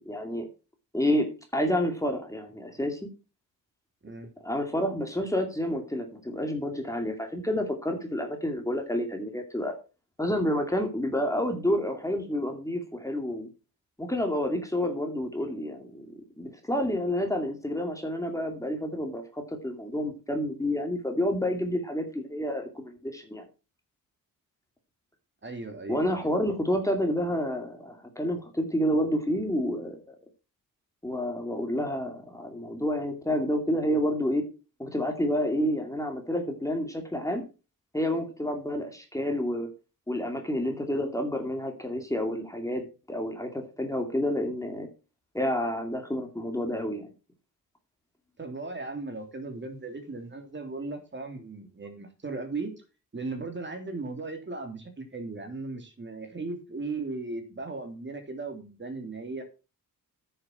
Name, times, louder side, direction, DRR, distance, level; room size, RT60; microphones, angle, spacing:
voice 1, 0.1-0.5 0.9-1.3 1.5-3.0 4.4-9.7 10.2-13.5 14.0-16.1 16.4-23.4 25.9-30.2 31.0-34.4 34.8-37.4 37.9-39.7 40.1-44.9 45.3-47.1, equal, 10° left, 4 dB, 2.4 m, -29 dB
voice 2, 25.4-26.1 48.4-52.8 53.1-59.4, right 3 dB, 35° right, 5 dB, 3.0 m, -37 dB
9.6 x 6.9 x 5.7 m, 0.32 s
cardioid pair, 80°, 34 cm